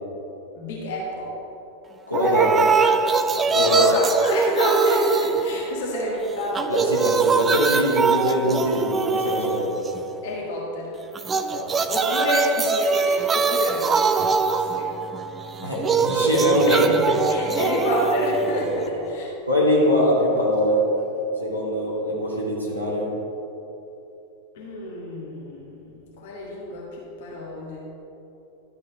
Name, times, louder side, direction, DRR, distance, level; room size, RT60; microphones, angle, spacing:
voice 1, 0.5-1.3 2.2-3.0 3.6-6.7 10.2-10.9 11.9-14.2 14.6-14.9 16.7-16.8 17.3-19.3 24.5-27.8, left 1 dB, 55° left, -4 dB, 1.6 m, -27 dB
voice 2, 2.1-2.6 3.5-3.9 6.7-9.8 11.5-11.7 15.6-17.2 19.5-20.8 21.4-23.1, equal, 90° left, -6 dB, 2.2 m, -22 dB
sound 1, 2.1-6.1 6.4-10.2 11.1-19.1, right 5 dB, 20° right, 0.4 m, -23 dB
12.0 x 5.4 x 4.9 m, 2.9 s
figure-of-eight pair, 90°, 0 cm